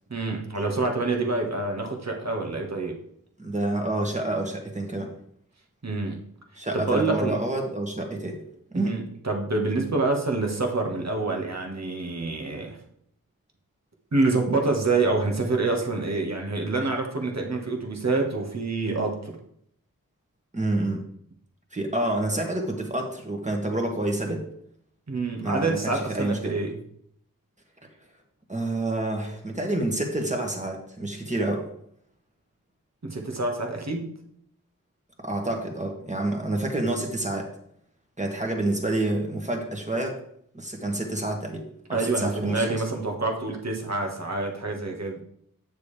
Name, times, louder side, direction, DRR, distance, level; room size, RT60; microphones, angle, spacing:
voice 1, 0.1-2.9 5.8-6.2 6.7-7.3 8.7-12.8 14.1-19.4 25.1-26.8 33.1-34.2 41.9-45.2, right 3 dB, 50° right, 2 dB, 1.7 m, -27 dB
voice 2, 3.4-5.1 6.6-8.4 8.7-8.9 20.5-21.0 21.7-24.4 25.4-26.5 28.5-31.6 35.2-37.5 38.2-40.2 40.5-41.6 41.9-42.8, right 1 dB, 20° right, 1 dB, 2.0 m, -28 dB
8.8 x 6.7 x 3.4 m, 0.69 s
wide cardioid pair, 45°, 35 cm